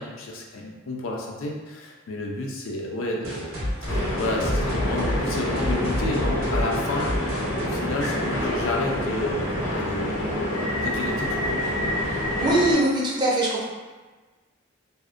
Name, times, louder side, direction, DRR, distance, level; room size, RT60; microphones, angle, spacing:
voice 1, 0.0-3.6 3.9-7.1 7.6-11.6, left 2 dB, 90° left, 0 dB, 0.4 m, -31 dB
sound 1, 3.2-8.7, equal, 90° right, 0.8 m, -30 dB
sound 2, 3.9-12.7, left 1 dB, 70° left, 0.8 m, -27 dB
voice 2, 12.4-13.6, right 1 dB, 20° right, -4 dB, 0.4 m, -22 dB
2.6 x 2.1 x 2.4 m, 1.3 s
head